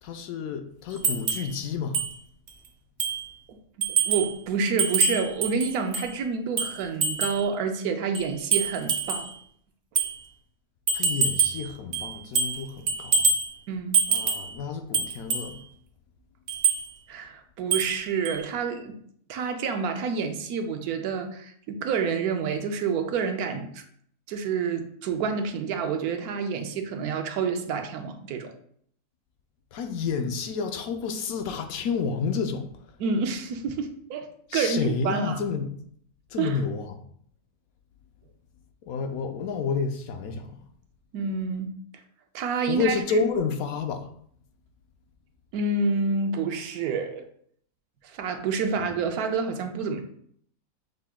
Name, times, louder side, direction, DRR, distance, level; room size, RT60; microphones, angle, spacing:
voice 1, 0.0-2.0 10.9-13.3 14.1-15.6 29.7-32.7 34.5-35.7 36.3-37.0 38.9-40.5 42.7-44.1 48.8-48.9, left 5 dB, 70° left, 0.9 m, -30 dB
sound 1, 1.0-1.5 1.9-2.1 2.5-2.6 3.0-3.3 3.8-4.3 4.8-6.1 6.6-7.4 8.1-9.3 10.0-10.1 10.9-11.6 11.9-12.6 12.9-13.5 13.9-14.5 14.9-15.5 16.5-16.8 17.7-18.0 18.2-18.4, right 5 dB, 55° right, 0.7 m, -25 dB
voice 2, 4.0-9.3 13.7-14.0 17.1-18.9 19.3-23.8 24.3-28.5 33.0-35.4 36.4-36.6 41.1-41.7 42.3-43.2 45.5-47.2 48.0-50.0, right 5 dB, 80° right, 1.1 m, -28 dB
6.5 x 2.2 x 3.5 m
omnidirectional pair, 1.6 m